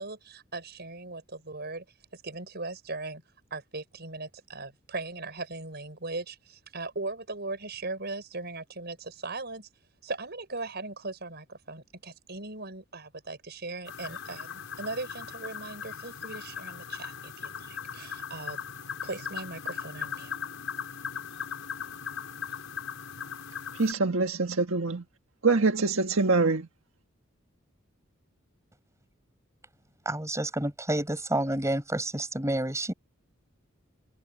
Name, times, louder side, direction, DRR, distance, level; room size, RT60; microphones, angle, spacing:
voice 1, 0.0-1.8 2.1-3.2 3.5-9.7 10.0-18.6 19.0-20.3, right 3 dB, 50° right, 6.0 m, -39 dB
sound 1, 13.9-23.9, left 7 dB, 75° left, 5.9 m, -39 dB
voice 2, 23.7-25.0 25.4-26.7, right 3 dB, 75° right, 1.6 m, -24 dB
voice 3, 30.0-32.9, right 1 dB, 15° right, 5.9 m, -29 dB
head